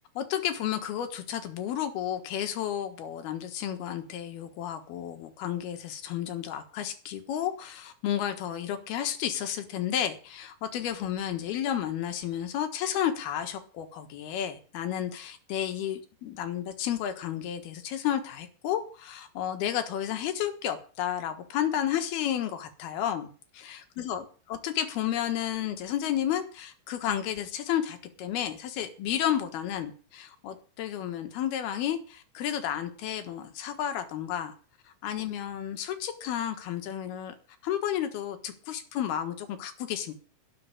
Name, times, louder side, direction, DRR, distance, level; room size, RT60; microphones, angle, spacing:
voice 1, 0.2-34.5 35.0-37.3 37.6-40.2, left 10 dB, 70° left, 3.3 m, -32 dB
12.5 x 6.8 x 9.8 m
omnidirectional pair, 5.0 m